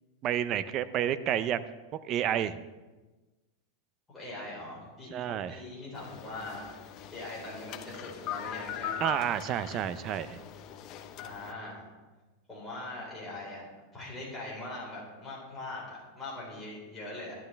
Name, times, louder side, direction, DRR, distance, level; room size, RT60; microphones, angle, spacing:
voice 1, 0.2-1.6 2.0-2.6 5.1-5.6 9.0-10.4, right 10 dB, 30° right, 13 dB, 0.4 m, -30 dB
voice 2, 4.1-6.7 7.1-9.0 11.2-11.8 12.5-13.6 13.9-17.3, left 2 dB, 10° left, -6 dB, 4.4 m, -41 dB
sound 1, 5.9-11.5, left 10 dB, 35° left, 0.6 m, -41 dB
12.0 x 11.5 x 3.4 m, 1.2 s
supercardioid pair, 165°, 0 cm